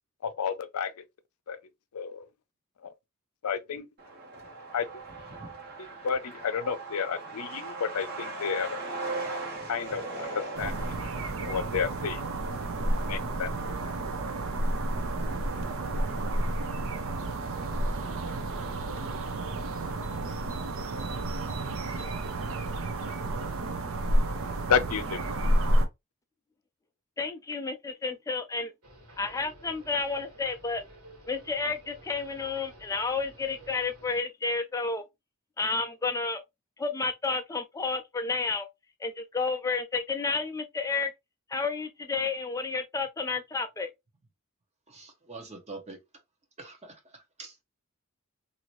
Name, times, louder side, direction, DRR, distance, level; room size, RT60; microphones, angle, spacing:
voice 1, 0.2-0.9 1.5-1.6 1.9-2.2 2.8-2.9 3.4-3.9 4.7-4.9 5.8-8.8 9.7-10.7 11.0-11.1 11.4-12.2 13.0-13.5 24.7-25.2, left 6 dB, 85° left, 0.5 m, -31 dB
Truck, 4.0-19.2 19.5-19.6 19.8-20.7 21.0-21.1 21.5-21.8, right 3 dB, 50° right, 1.3 m, -41 dB
sound 1, 10.6-25.9, right 1 dB, 65° right, 0.6 m, -30 dB
voice 2, 27.2-28.7 29.2-30.8 31.3-35.0 35.6-36.4 36.8-38.7 39.0-41.1 41.5-43.9, left 4 dB, 15° left, 0.4 m, -31 dB
sound 2, 28.8-34.2, right 1 dB, 85° right, 1.8 m, -52 dB
voice 3, 44.9-46.0 46.6-47.6, right 3 dB, 30° right, 0.9 m, -45 dB
2.8 x 2.6 x 3.0 m
head